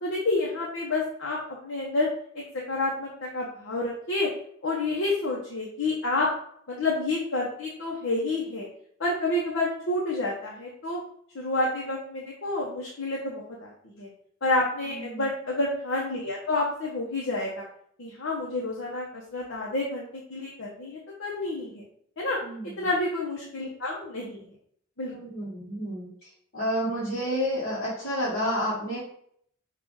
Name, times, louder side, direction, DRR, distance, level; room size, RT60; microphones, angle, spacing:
voice 1, 0.0-2.1 2.3-4.3 4.6-6.3 6.7-8.7 9.0-11.0 11.3-13.7 14.0-14.1 14.4-17.6 18.0-21.8 22.2-22.4 22.8-24.4 25.0-25.1, left 2 dB, 65° left, -3 dB, 0.9 m, -29 dB
voice 2, 14.9-15.3 22.4-22.7 25.1-26.1 26.5-29.0, equal, 45° left, -9 dB, 1.3 m, -30 dB
5.5 x 2.4 x 3.9 m, 0.65 s
head